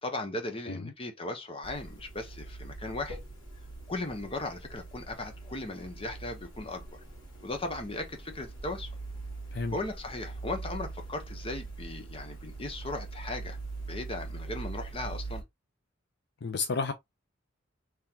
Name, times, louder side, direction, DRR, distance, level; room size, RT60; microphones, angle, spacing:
voice 1, 0.0-3.2 3.9-7.0 7.4-8.9 9.7-13.6 13.9-15.4, left 2 dB, 30° left, 0.9 m, -37 dB
sound 1, 1.6-15.4, right 3 dB, 85° left, 1.9 m, -42 dB
voice 2, 16.4-16.9, left 4 dB, 60° left, 0.5 m, -31 dB
3.7 x 3.2 x 2.8 m
head